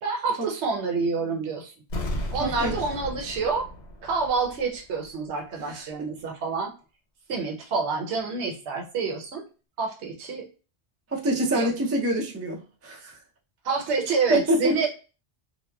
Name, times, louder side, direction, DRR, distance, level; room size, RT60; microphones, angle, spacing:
voice 1, 0.0-1.7 2.3-3.7 4.0-6.7 7.3-9.4 9.8-10.5 11.5-11.7 13.6-14.9, right 4 dB, 80° right, 2 dB, 1.0 m, -27 dB
sound 1, 1.9-4.8 5.0-5.1, left 1 dB, 85° left, 1.0 m, -34 dB
voice 2, 2.4-2.7 5.6-5.8 11.1-13.2 14.3-14.9, equal, 25° right, 0 dB, 0.3 m, -26 dB
2.8 x 2.1 x 2.2 m, 0.34 s
omnidirectional pair, 1.1 m